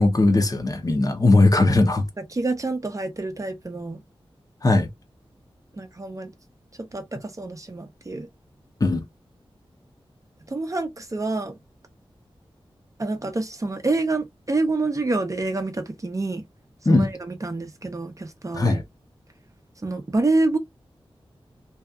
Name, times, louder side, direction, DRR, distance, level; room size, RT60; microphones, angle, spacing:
voice 1, 0.0-2.0 4.6-4.9 8.8-9.0 16.9-17.1 18.5-18.8, left 2 dB, 40° left, 0.6 m, -18 dB
voice 2, 2.3-4.0 5.7-6.3 6.8-8.3 10.5-11.6 13.0-16.4 16.9-18.8 19.8-20.6, right 2 dB, 35° right, 0.6 m, -27 dB
2.7 x 2.3 x 2.2 m
wide cardioid pair, 65°, 10 cm